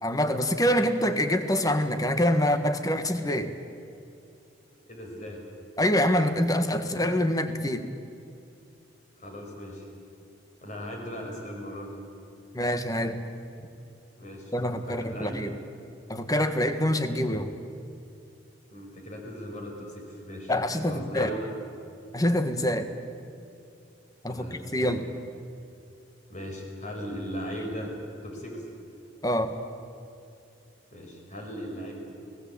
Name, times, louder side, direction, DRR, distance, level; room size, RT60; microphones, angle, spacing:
voice 1, 0.0-3.5 5.8-7.9 12.5-13.2 14.5-15.5 16.1-17.5 20.5-21.3 22.1-22.9 24.2-24.4 24.7-25.0 29.2-29.5, left 1 dB, 20° left, 8 dB, 1.5 m, -25 dB
voice 2, 4.9-5.4 9.2-9.9 10.6-12.0 14.2-14.5 14.8-15.4 18.7-20.5 20.8-21.4 22.7-22.8 24.3-25.0 26.3-27.9 28.2-28.7 30.9-32.1, equal, 40° left, 1 dB, 5.6 m, -38 dB
29.5 x 18.0 x 8.6 m, 2.5 s
head